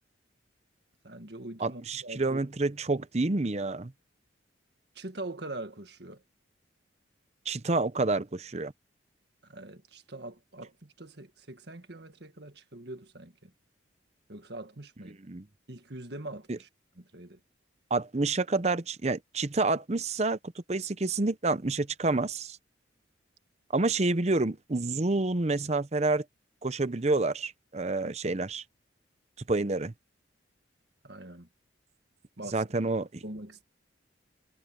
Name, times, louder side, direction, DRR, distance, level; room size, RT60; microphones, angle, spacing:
voice 1, 1.0-2.4 5.0-6.2 9.4-13.5 14.3-15.2 15.7-16.7 17.0-17.4 31.0-31.5 32.4-32.6 33.2-33.6, right 2 dB, 55° right, 1.8 m, -43 dB
voice 2, 1.6-3.9 7.5-8.7 15.3-15.4 16.5-16.6 17.9-20.4 20.7-22.6 23.7-26.2 26.6-28.6 29.5-29.9 32.5-33.2, right 3 dB, 35° right, 0.7 m, -28 dB
head